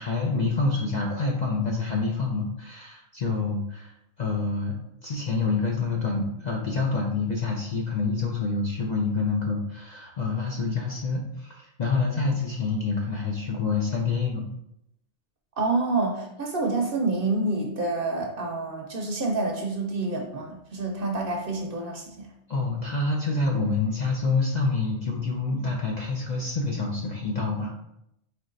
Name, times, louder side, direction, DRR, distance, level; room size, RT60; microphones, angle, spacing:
voice 1, 0.0-4.8 5.0-14.5 22.5-27.7, left 4 dB, 50° left, -1 dB, 0.5 m, -27 dB
voice 2, 15.6-22.3, right 3 dB, 50° right, 1 dB, 0.8 m, -28 dB
4.5 x 3.1 x 3.8 m, 0.80 s
omnidirectional pair, 1.3 m